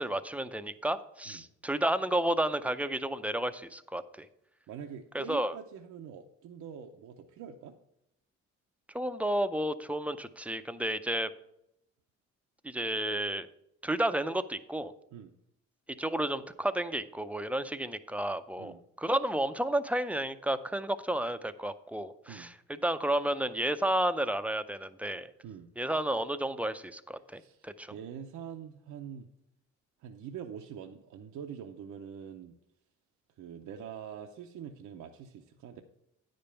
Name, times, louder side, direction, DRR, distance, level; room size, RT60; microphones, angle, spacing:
voice 1, 0.0-4.3 5.1-5.6 8.9-11.3 12.6-13.5 13.8-14.9 16.0-22.5 22.8-25.3 25.8-27.9, right 1 dB, 5° right, 11 dB, 0.5 m, -31 dB
voice 2, 4.7-7.8 15.1-15.3 18.6-18.8 22.3-22.5 25.4-25.7 27.3-29.3 30.0-32.6 33.4-35.8, right 8 dB, 75° right, 4 dB, 0.7 m, -44 dB
9.5 x 5.3 x 5.6 m, 0.80 s
cardioid pair, 90°, 30 cm